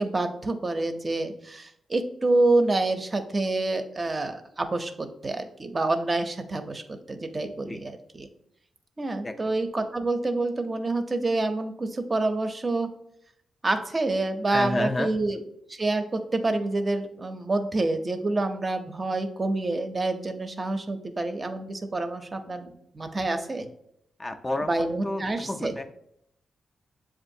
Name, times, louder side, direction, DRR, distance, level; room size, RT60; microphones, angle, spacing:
voice 1, 0.0-8.3 9.0-12.9 13.6-15.4 15.7-23.7 24.6-25.7, right 2 dB, 30° right, 7 dB, 0.5 m, -27 dB
voice 2, 14.5-15.1 24.2-25.9, left 1 dB, 25° left, 6 dB, 0.4 m, -30 dB
7.1 x 2.5 x 2.6 m, 0.72 s
cardioid pair, 90°, 0 cm